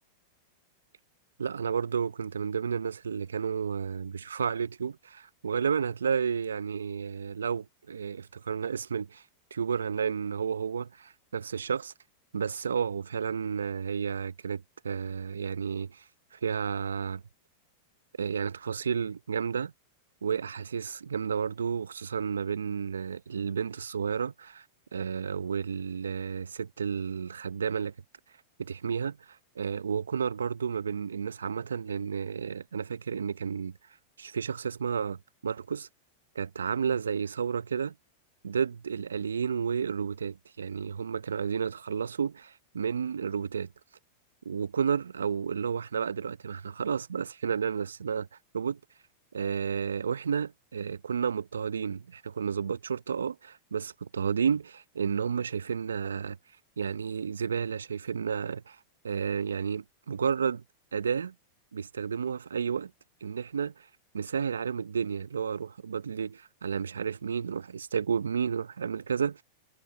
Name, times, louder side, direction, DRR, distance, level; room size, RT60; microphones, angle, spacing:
voice 1, 1.4-9.2 9.5-11.9 12.3-16.0 16.3-17.2 18.2-19.7 20.2-24.6 24.9-27.9 28.6-33.8 34.2-35.9 36.3-37.9 38.4-43.7 44.4-48.3 48.5-48.8 49.3-56.4 56.8-58.8 59.0-60.6 60.9-61.3 61.7-62.9 63.2-63.9 64.1-69.4, right 6 dB, 80° right, 0.9 m, -31 dB
hypercardioid pair, 95°, 0 cm